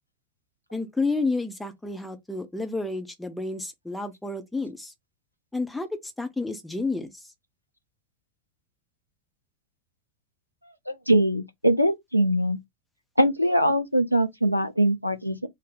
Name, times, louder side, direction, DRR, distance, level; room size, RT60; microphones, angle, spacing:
voice 1, 0.7-4.9 5.5-7.3, left 3 dB, 5° left, 0.7 m, -30 dB
voice 2, 10.9-12.6 13.2-15.5, right 1 dB, 90° left, 0.5 m, -22 dB
3.3 x 2.1 x 3.7 m
figure-of-eight pair, 90°, 0 cm